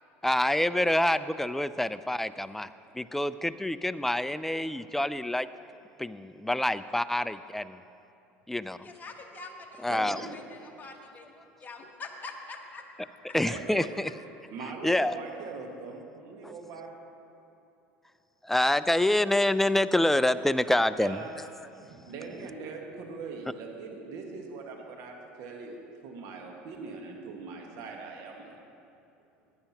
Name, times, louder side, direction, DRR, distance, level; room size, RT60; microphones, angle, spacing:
voice 1, 0.2-2.7 2.9-5.5 6.0-7.8 8.5-8.9 9.8-10.2 13.3-14.1 14.6-15.2 16.4-16.5 18.4-21.2, left 1 dB, 5° left, 14 dB, 0.3 m, -27 dB
voice 2, 8.8-11.3 11.6-13.3, left 3 dB, 30° left, 2 dB, 1.2 m, -45 dB
voice 3, 9.9-10.4 13.4-13.9 14.5-16.9 21.0-21.3 21.8-28.6, right 4 dB, 60° right, 1 dB, 1.6 m, -41 dB
15.0 x 10.0 x 2.9 m, 2.7 s
hypercardioid pair, 75°, 6 cm